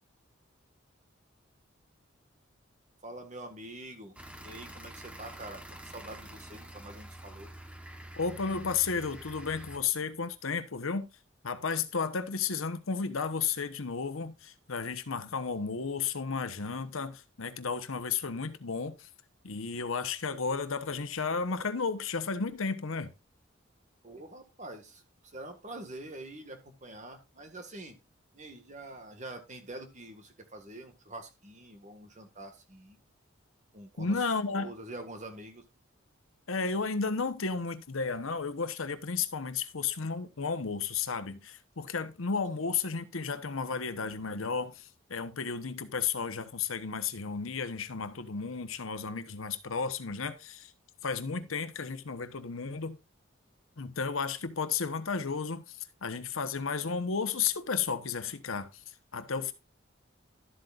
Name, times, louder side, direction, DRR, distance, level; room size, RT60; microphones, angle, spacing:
voice 1, 3.0-4.2 4.4-7.5 24.0-28.0 28.3-33.0 33.7-34.1 34.5-35.6 42.6-42.7 51.4-51.5, right 1 dB, 35° right, 1.7 m, -45 dB
sound 1, 4.2-9.8, right 1 dB, 5° right, 1.0 m, -47 dB
voice 2, 8.2-11.1 11.4-19.1 19.4-23.1 34.0-34.7 36.5-50.7 51.0-53.0 53.8-59.5, left 5 dB, 85° left, 1.0 m, -33 dB
12.5 x 7.9 x 2.4 m
head